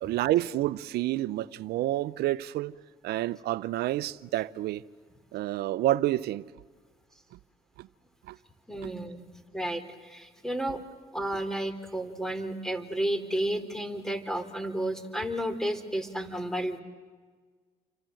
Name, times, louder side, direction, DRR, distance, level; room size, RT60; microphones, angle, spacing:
voice 1, 0.0-2.7 3.0-4.8 5.3-6.4 7.8-7.9 8.3-8.4 8.8-8.9, right 15 dB, 75° right, 0.7 m, -29 dB
voice 2, 8.7-9.3 9.5-10.8 11.1-16.8, right 1 dB, 5° left, 3.6 m, -32 dB
29.0 x 25.0 x 7.8 m
supercardioid pair, 65°, 17 cm